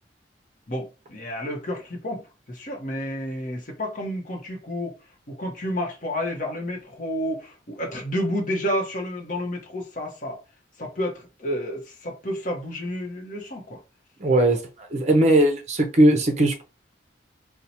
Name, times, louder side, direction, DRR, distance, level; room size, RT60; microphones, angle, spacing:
voice 1, 0.7-2.2 2.5-4.9 5.3-10.4 10.8-13.8, equal, 45° left, 0.8 m, -30 dB
voice 2, 14.2-16.6, right 1 dB, 35° right, 0.5 m, -19 dB
2.8 x 2.1 x 4.1 m
head